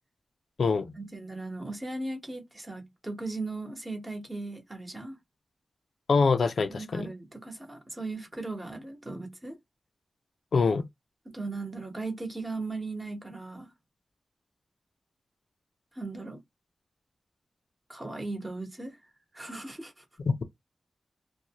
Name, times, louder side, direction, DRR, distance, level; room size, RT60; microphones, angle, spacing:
voice 1, 1.0-5.2 6.7-9.6 11.3-13.7 15.9-16.4 17.9-19.0 19.3-20.0, right 2 dB, 20° right, 1.0 m, -37 dB
voice 2, 6.1-7.1 10.5-10.9 20.3-20.4, left 4 dB, 65° left, 0.4 m, -24 dB
2.5 x 2.2 x 2.8 m
wide cardioid pair, 115°, 0 cm